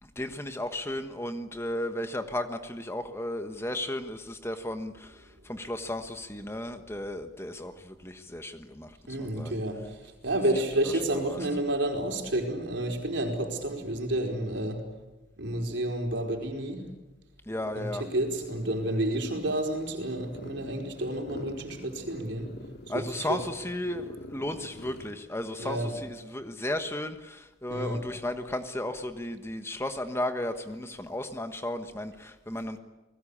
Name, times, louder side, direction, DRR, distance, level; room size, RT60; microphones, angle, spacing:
voice 1, 0.0-9.6 10.8-11.5 17.5-18.0 22.9-32.8, left 1 dB, 15° left, 8 dB, 1.2 m, -34 dB
voice 2, 9.1-10.0 10.2-14.8 15.4-16.9 17.7-22.5 22.9-23.0 23.3-23.4 25.6-25.9 27.7-28.0, right 1 dB, 65° right, 3 dB, 4.8 m, -30 dB
sound 1, 17.5-25.2, left 1 dB, 55° left, 2.2 m, -46 dB
29.5 x 20.0 x 8.7 m, 1.1 s
head